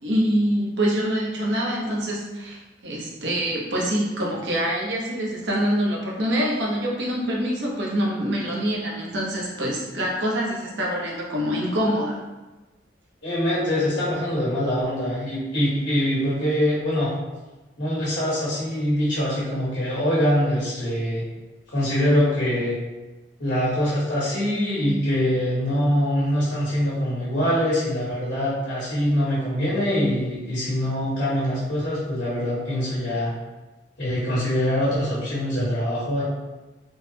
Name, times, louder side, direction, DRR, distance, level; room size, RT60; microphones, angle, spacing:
voice 1, 0.0-12.2, equal, 85° right, -3 dB, 0.8 m, -25 dB
voice 2, 13.2-17.1 17.8-21.2 21.7-22.7 23.4-33.3 34.0-36.2, equal, 80° left, -9 dB, 1.2 m, -23 dB
3.6 x 2.0 x 2.7 m, 1.1 s
head